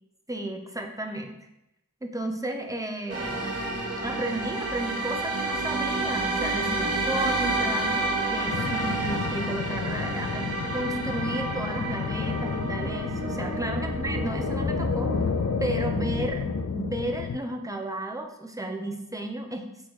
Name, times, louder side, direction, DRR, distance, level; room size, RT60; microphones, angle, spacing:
voice 1, 0.3-1.4 2.0-3.5 4.0-15.1 15.6-16.5 16.7-19.6, right 1 dB, 10° right, 3 dB, 0.8 m, -33 dB
sound 1, 3.1-16.6, right 2 dB, 50° right, 1.3 m, -30 dB
sound 2, 8.5-17.4, left 6 dB, 55° left, 0.4 m, -31 dB
6.4 x 4.0 x 4.7 m, 0.87 s
wide cardioid pair, 50°, 32 cm